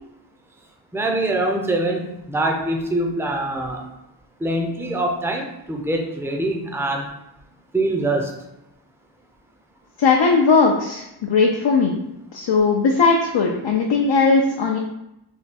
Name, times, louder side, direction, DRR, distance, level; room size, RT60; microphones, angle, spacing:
voice 1, 0.9-3.9 4.4-7.1 7.7-8.3, right 2 dB, 5° right, 2 dB, 0.5 m, -24 dB
voice 2, 10.0-12.0 12.3-14.8, left 4 dB, 70° left, 0 dB, 0.5 m, -18 dB
3.5 x 2.2 x 4.1 m, 0.89 s
wide cardioid pair, 75°, 45 cm